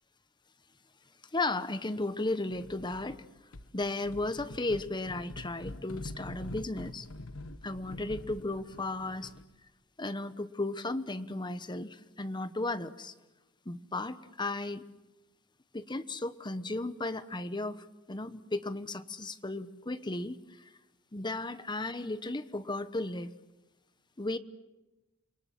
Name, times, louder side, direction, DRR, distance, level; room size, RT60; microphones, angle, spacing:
voice 1, 1.3-3.2 3.7-7.1 7.6-9.3 10.0-13.1 13.7-14.8 15.7-20.4 21.1-23.3 24.2-24.4, left 2 dB, 20° left, 12 dB, 1.1 m, -35 dB
sound 1, 2.5-3.2 3.5-9.6, left 2 dB, 85° left, 1.3 m, -45 dB
29.5 x 23.0 x 7.6 m, 1.1 s
head